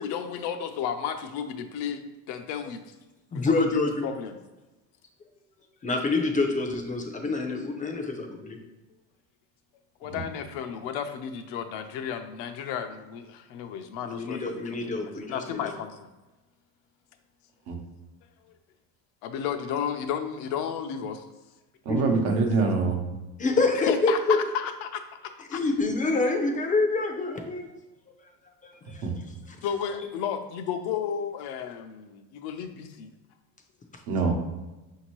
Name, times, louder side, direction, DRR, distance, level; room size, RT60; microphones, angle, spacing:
voice 1, 0.0-2.8 3.3-4.4 10.0-16.1 19.2-21.2 23.8-25.6 29.6-33.1, left 8 dB, 75° left, 7 dB, 0.6 m, -33 dB
voice 2, 3.3-4.1 5.8-8.6 14.0-15.7 21.9-22.5 23.4-24.4 25.5-27.7 28.6-29.1 29.5-29.6 33.9-34.0, left 3 dB, 20° left, 4 dB, 0.4 m, -27 dB
voice 3, 21.8-23.0 29.0-29.1 34.1-34.3, right 4 dB, 70° right, 2 dB, 0.9 m, -24 dB
5.3 x 2.8 x 3.0 m, 1.1 s
cardioid pair, 125°, 40 cm